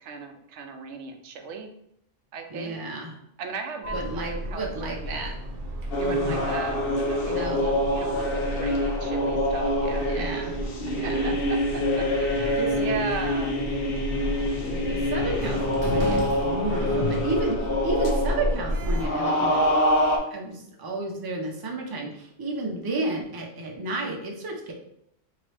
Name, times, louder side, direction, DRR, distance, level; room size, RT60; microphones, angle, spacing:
voice 1, 0.0-1.7 2.3-2.8 3.4-5.3 6.0-10.5 11.0-13.6, right 4 dB, 85° right, 5 dB, 0.9 m, -37 dB
voice 2, 2.5-3.1 3.9-5.3 6.0-6.4 7.3-7.6 10.0-11.3 12.5-12.8 14.6-15.6 15.9-19.6 20.2-24.7, right 2 dB, 25° right, 0 dB, 0.5 m, -32 dB
Sliding door, 3.8-19.1, equal, 60° right, 0.9 m, -32 dB
sound 1, 5.9-20.2, left 1 dB, 60° left, 0.8 m, -26 dB
3.8 x 2.9 x 3.2 m, 0.75 s
omnidirectional pair, 1.2 m